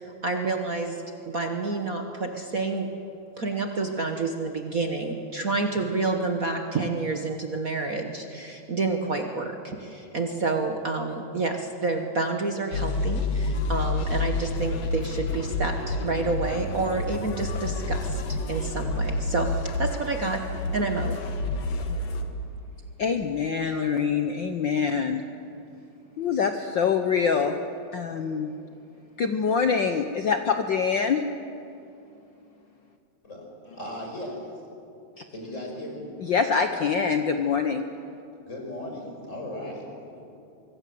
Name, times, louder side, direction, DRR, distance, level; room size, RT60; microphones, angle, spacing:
voice 1, 0.0-2.9 3.4-20.4 20.7-21.1, right 3 dB, 55° right, 4 dB, 0.9 m, -29 dB
sound 1, 12.7-22.2, left 2 dB, 60° left, 2.7 m, -29 dB
voice 2, 23.0-25.2 26.2-27.6 27.9-28.5 29.2-31.2 35.2-35.3 36.2-37.8, left 6 dB, 80° left, 7 dB, 1.0 m, -25 dB
voice 3, 33.7-34.5 35.3-36.1 38.5-40.2, left 1 dB, 25° left, 0 dB, 5.6 m, -37 dB
24.5 x 22.5 x 7.8 m, 2.7 s
omnidirectional pair, 3.4 m